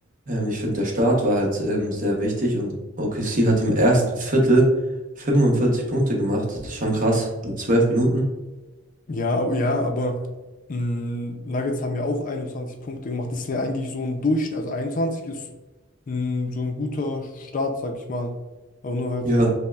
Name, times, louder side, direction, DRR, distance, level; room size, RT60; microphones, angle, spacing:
voice 1, 0.3-4.7 5.2-8.2 19.2-19.5, right 1 dB, 45° right, -1 dB, 0.8 m, -21 dB
voice 2, 9.1-10.3 10.7-15.5 16.1-18.4 18.8-19.3, left 2 dB, 45° left, 4 dB, 0.4 m, -26 dB
5.3 x 2.1 x 2.3 m, 1.2 s
head